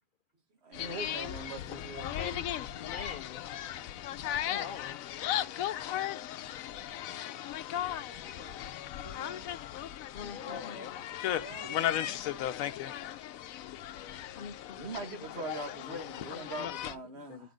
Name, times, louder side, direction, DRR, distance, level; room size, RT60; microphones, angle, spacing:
voice 1, 0.6-2.2 3.8-3.9 4.3-4.4 14.1-14.2 14.7-17.5, right 2 dB, 50° right, 1.7 m, -42 dB
sound 1, 0.7-16.9, left 11 dB, 85° left, 1.0 m, -36 dB
voice 2, 2.1-2.5 2.7-3.4 4.4-5.0 10.1-11.0 14.4-15.2 15.9-16.0 16.3-17.5, left 6 dB, 65° left, 0.5 m, -45 dB
voice 3, 7.9-9.5 10.4-12.7, left 1 dB, 25° left, 0.8 m, -50 dB
6.7 x 6.1 x 5.0 m
omnidirectional pair, 1.4 m